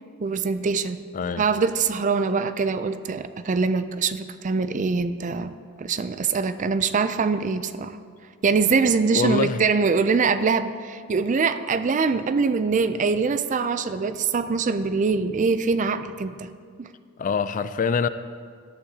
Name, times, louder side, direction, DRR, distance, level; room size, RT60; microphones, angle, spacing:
voice 1, 0.2-1.0 1.4-5.5 5.8-8.0 8.4-16.5 16.8-16.9, right 4 dB, 35° right, 12 dB, 0.4 m, -23 dB
voice 2, 1.1-1.4 9.2-9.6 17.2-18.1, left 5 dB, 35° left, 13 dB, 0.3 m, -24 dB
18.0 x 11.5 x 2.8 m, 2.1 s
head